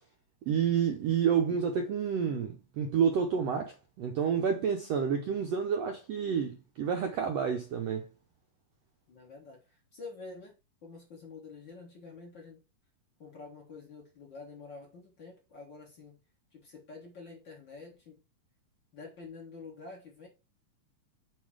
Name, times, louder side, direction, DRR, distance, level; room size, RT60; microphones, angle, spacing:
voice 1, 0.5-8.1, right 7 dB, 75° right, 1.5 m, -29 dB
voice 2, 9.1-10.5 10.8-12.6 13.2-16.2 16.5-18.2 18.9-20.3, left 4 dB, 45° left, 1.8 m, -48 dB
7.4 x 3.2 x 4.9 m
omnidirectional pair, 3.8 m